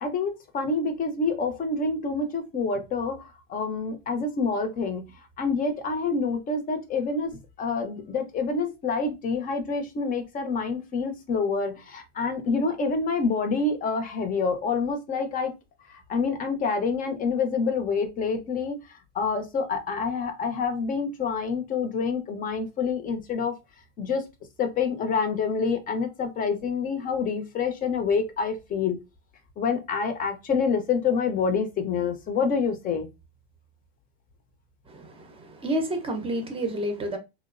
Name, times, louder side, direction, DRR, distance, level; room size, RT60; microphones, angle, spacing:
voice 1, 0.0-3.2 3.5-5.0 5.4-15.5 15.9-18.8 19.1-23.6 24.0-24.3 24.6-29.0 29.6-33.1, left 4 dB, 25° left, 0.7 m, -27 dB
voice 2, 34.9-37.2, right 1 dB, 20° right, 0.7 m, -30 dB
3.0 x 2.0 x 2.4 m
supercardioid pair, 125°, 30 cm